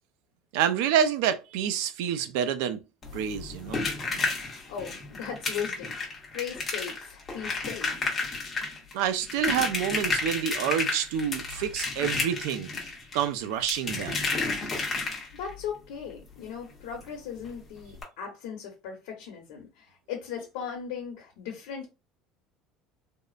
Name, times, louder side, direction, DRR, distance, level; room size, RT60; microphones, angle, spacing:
voice 1, 0.5-2.8 3.1-3.8 8.9-12.7 13.1-14.2, right 9 dB, 80° right, 0.4 m, -28 dB
sound 1, 3.0-15.5 17.0-17.1 17.4-17.5 17.9-18.0, left 3 dB, 20° left, 0.8 m, -32 dB
voice 2, 4.7-8.1 15.3-21.9, left 7 dB, 80° left, 1.0 m, -38 dB
3.5 x 2.0 x 2.4 m
cardioid pair, 165°, 0 cm